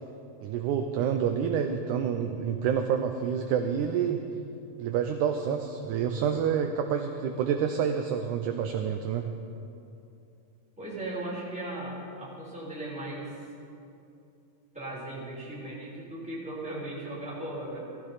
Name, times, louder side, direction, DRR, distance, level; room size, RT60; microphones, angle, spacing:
voice 1, 0.4-4.2 4.8-9.3, right 8 dB, 75° right, 5 dB, 1.9 m, -28 dB
voice 2, 10.8-13.4 14.7-18.0, right 1 dB, ahead, -6 dB, 3.3 m, -37 dB
16.5 x 15.0 x 4.1 m, 2.6 s
omnidirectional pair, 3.9 m